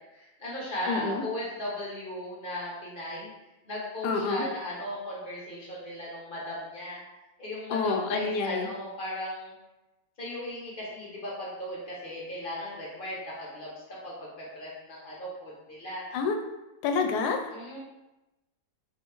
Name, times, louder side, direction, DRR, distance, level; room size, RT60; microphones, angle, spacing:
voice 1, 0.0-3.3 3.6-7.0 7.4-9.5 10.2-16.1 17.5-17.8, left 1 dB, 35° left, -5 dB, 1.1 m, -37 dB
voice 2, 0.9-1.2 4.0-4.5 7.7-8.7 16.1-16.4 16.8-17.5, left 4 dB, 85° left, 5 dB, 1.1 m, -28 dB
4.0 x 3.1 x 3.4 m, 0.99 s
omnidirectional pair, 1.7 m